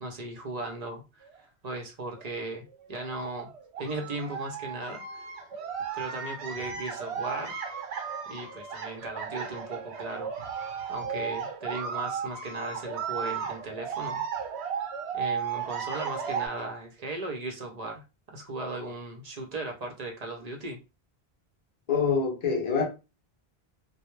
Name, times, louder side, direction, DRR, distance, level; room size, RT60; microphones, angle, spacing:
voice 1, 0.0-1.3 1.6-3.5 3.8-5.3 5.9-7.5 8.3-10.3 10.9-14.2 15.1-20.8, right 2 dB, 50° right, 0.6 m, -37 dB
sound 1, 1.3-1.4 2.1-2.3 2.7-16.5, right 7 dB, 90° right, 0.9 m, -35 dB
voice 2, 21.9-22.9, left 5 dB, 45° left, 0.6 m, -25 dB
2.2 x 2.0 x 3.0 m
omnidirectional pair, 1.1 m